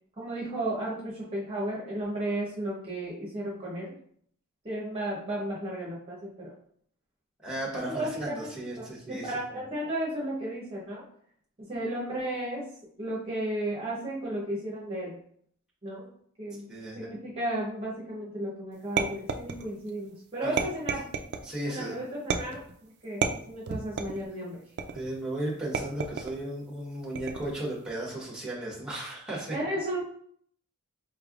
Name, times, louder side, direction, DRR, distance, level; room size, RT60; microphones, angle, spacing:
voice 1, 0.2-3.9 4.6-6.5 7.9-8.5 8.8-11.0 11.6-12.7 13.0-15.2 15.8-16.1 16.4-16.7 16.9-21.1 21.6-22.6 23.0-24.6 29.5-30.0, right 1 dB, 25° right, -5 dB, 0.9 m, -34 dB
voice 2, 7.4-9.4 16.7-17.1 20.4-20.5 21.4-22.0 24.9-29.6, right 1 dB, 5° right, -3 dB, 1.2 m, -35 dB
sound 1, 19.0-19.9 20.6-21.5 22.3-22.7 23.2-24.3 24.8-25.2 25.7-26.4 27.2-27.6, right 5 dB, 50° right, 0.4 m, -31 dB
4.5 x 3.3 x 2.4 m, 0.62 s
head